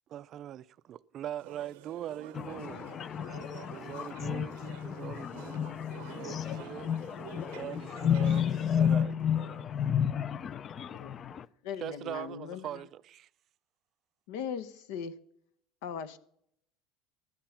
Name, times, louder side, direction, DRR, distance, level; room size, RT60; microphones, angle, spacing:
voice 1, 0.1-3.0 3.7-4.5 4.8-5.6 6.0-6.9 7.5-8.4 8.8-9.1 9.4-9.6 11.8-13.3, right 11 dB, 45° right, 0.4 m, -41 dB
sound 1, 1.4-9.0, right 13 dB, 85° right, 0.7 m, -50 dB
voice 2, 2.3-11.5, left 8 dB, 35° left, 0.4 m, -32 dB
voice 3, 11.6-12.8 14.3-15.2 15.8-16.2, left 7 dB, 75° left, 0.9 m, -39 dB
13.0 x 11.0 x 5.7 m
supercardioid pair, 125°, 0 cm